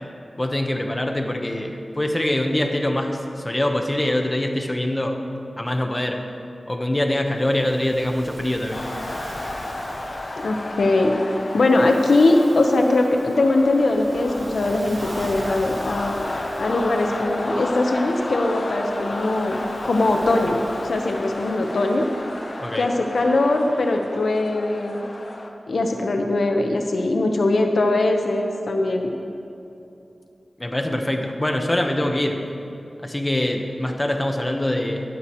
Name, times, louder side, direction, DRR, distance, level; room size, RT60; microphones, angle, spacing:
voice 1, 0.3-5.2 5.6-6.2 6.7-8.8 22.6-22.9 30.6-32.4 33.0-35.0, left 1 dB, 20° left, 3 dB, 1.2 m, -24 dB
Waves surf, 7.3-22.8, right 1 dB, 65° right, 2.5 m, -42 dB
sound 1, 8.7-25.5, left 1 dB, 50° left, 1.2 m, -32 dB
voice 2, 10.4-11.1 11.5-16.3 16.6-19.6 19.8-22.1 22.8-25.0 25.7-29.1, left 2 dB, 80° left, 3 dB, 1.2 m, -21 dB
23.5 x 9.4 x 3.2 m, 2.7 s
wide cardioid pair, 85°, 0 cm